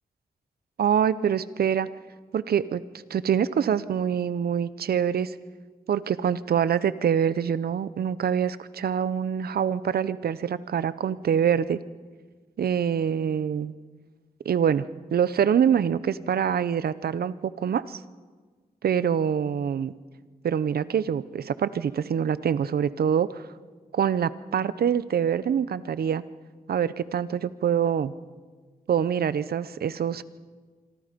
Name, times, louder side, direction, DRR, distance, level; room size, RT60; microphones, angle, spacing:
voice 1, 0.8-1.9 2.3-2.8 3.1-5.3 5.9-11.8 12.6-13.7 14.4-14.8 15.1-18.0 18.8-19.9 20.4-23.5 23.9-26.2 26.7-28.1 28.9-30.2, right 8 dB, 80° right, 16 dB, 0.8 m, -25 dB
26.5 x 25.0 x 5.3 m, 1.4 s
cardioid pair, 70°, 16 cm